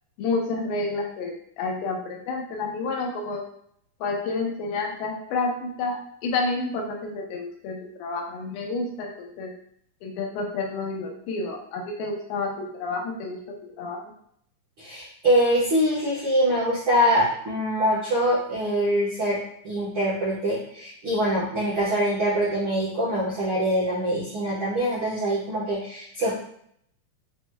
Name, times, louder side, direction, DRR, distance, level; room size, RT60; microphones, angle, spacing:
voice 1, 0.2-3.5 4.0-9.5 10.0-14.0, left 3 dB, 85° left, 1 dB, 2.6 m, -30 dB
voice 2, 14.8-19.4 19.6-26.3, equal, 75° right, -9 dB, 1.1 m, -24 dB
6.1 x 3.0 x 2.3 m, 0.67 s
omnidirectional pair, 4.3 m